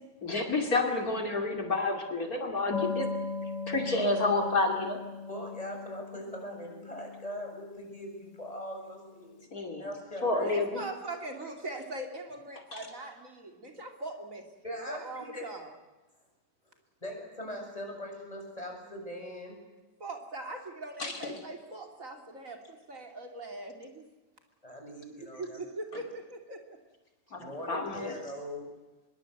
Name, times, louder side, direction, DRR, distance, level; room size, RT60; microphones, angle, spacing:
voice 1, 0.2-3.1 3.7-5.0 9.5-9.8 10.2-10.8 12.7-12.8 21.0-21.3 27.3-28.1, left 2 dB, 60° left, 3 dB, 3.1 m, -29 dB
sound 1, 2.7-8.9, left 4 dB, 85° left, 2.3 m, -39 dB
voice 2, 5.3-9.4 9.8-10.5 10.8-10.9 14.6-15.5 17.0-19.6 24.6-25.6 27.4-28.7, equal, 20° left, 1 dB, 7.4 m, -41 dB
voice 3, 10.4-14.4 14.9-15.7 20.0-24.0 25.1-26.8, right 2 dB, 50° right, 4 dB, 3.1 m, -41 dB
24.5 x 22.5 x 7.9 m, 1.1 s
omnidirectional pair, 1.8 m